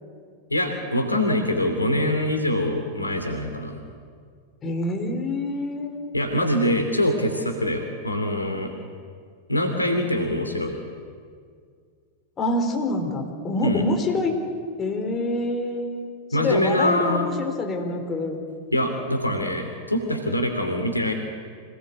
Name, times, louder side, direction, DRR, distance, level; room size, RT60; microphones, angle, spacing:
voice 1, 0.5-3.8 6.1-8.7 9.5-10.8 13.6-13.8 16.3-17.3 18.7-21.1, left 1 dB, 85° left, 5 dB, 3.0 m, -24 dB
voice 2, 4.6-6.2 12.4-14.3 14.8-16.1 16.4-18.4, left 2 dB, 25° left, 3 dB, 4.5 m, -26 dB
26.5 x 18.0 x 8.5 m, 2.1 s
figure-of-eight pair, 90°, 0 cm